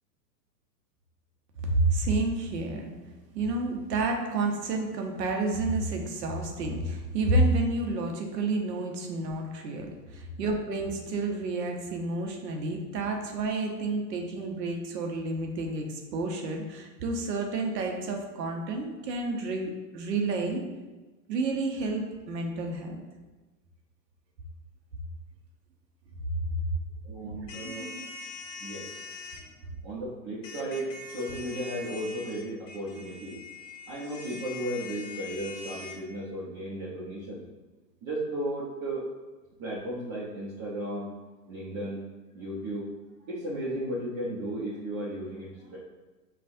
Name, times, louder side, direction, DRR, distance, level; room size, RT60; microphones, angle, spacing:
voice 1, 1.6-2.9 3.3-20.6 21.3-23.0, right 2 dB, 80° right, 2 dB, 0.9 m, -30 dB
voice 2, 27.0-28.0 28.6-28.9 29.8-33.4 33.9-37.4 38.0-39.0 39.6-41.1 41.5-42.0 42.3-42.9 43.3-45.8, right 1 dB, 25° right, -8 dB, 0.7 m, -35 dB
sound 1, 27.5-29.4 30.4-36.0, left 3 dB, 75° left, 0.9 m, -43 dB
5.6 x 2.4 x 2.6 m, 1.2 s
hypercardioid pair, 135°, 49 cm